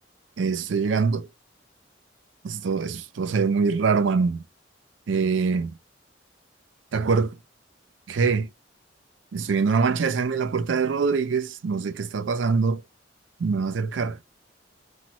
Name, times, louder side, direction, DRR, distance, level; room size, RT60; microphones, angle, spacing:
voice 1, 0.4-1.3 2.4-4.4 5.1-5.8 6.9-7.4 8.1-8.5 9.3-12.8 13.4-14.2, right 5 dB, 80° right, 0.4 m, -24 dB
3.0 x 2.2 x 2.8 m
head